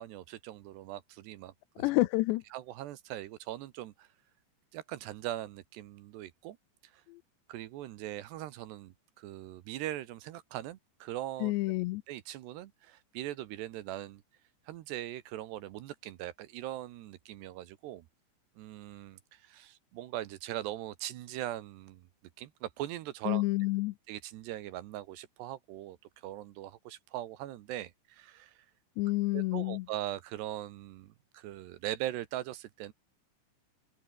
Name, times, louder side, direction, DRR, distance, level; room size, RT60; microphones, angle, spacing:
voice 1, 0.0-2.1 2.5-4.1 4.7-6.6 6.8-7.0 7.5-11.5 12.1-14.2 14.7-18.1 18.6-22.1 22.4-23.4 24.1-28.7 29.3-32.9, right 14 dB, 75° right, 3.1 m, -41 dB
voice 2, 1.8-2.4 7.1-7.2 11.4-12.0 23.3-24.0 29.0-29.9, left 21 dB, 80° left, 2.8 m, -29 dB
omnidirectional pair, 5.2 m